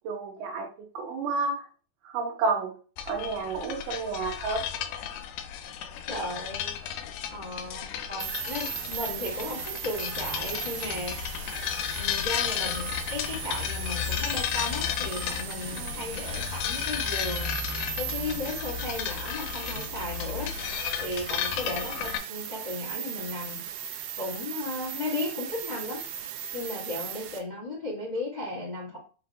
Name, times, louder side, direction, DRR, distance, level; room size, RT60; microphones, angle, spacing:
voice 1, 0.0-0.7 0.9-1.7 2.0-2.7 3.1-4.6 15.7-16.0, right 4 dB, 75° right, 1 dB, 2.1 m, -30 dB
sound 1, 3.0-22.2, left 9 dB, 85° left, 2.4 m, -33 dB
voice 2, 6.1-6.7 7.3-11.5 11.9-17.5 18.0-20.5 21.0-23.6 24.2-26.0 26.5-29.0, left 2 dB, 35° left, -6 dB, 0.7 m, -35 dB
sound 2, 8.2-27.4, right 9 dB, 90° right, 1.8 m, -37 dB
5.7 x 2.3 x 3.5 m, 0.38 s
omnidirectional pair, 4.2 m